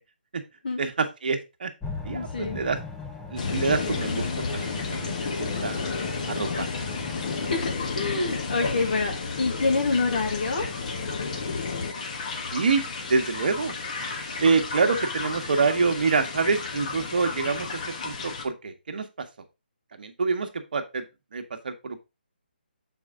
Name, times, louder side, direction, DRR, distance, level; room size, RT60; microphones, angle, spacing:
voice 1, 0.7-1.7 2.0-2.8 3.3-4.3 4.5-5.8 6.3-6.8 12.5-13.7 14.4-17.7 18.0-19.3 19.9-21.0 21.3-22.0, right 4 dB, 55° right, 1.1 m, -26 dB
sound 1, 1.8-7.6, left 3 dB, 10° left, 0.6 m, -39 dB
voice 2, 2.1-2.6 7.4-10.7, left 3 dB, 60° left, 1.9 m, -27 dB
sound 2, 3.4-18.4, left 4 dB, 45° left, 1.3 m, -32 dB
6.8 x 4.4 x 3.6 m
hypercardioid pair, 155°, 6 cm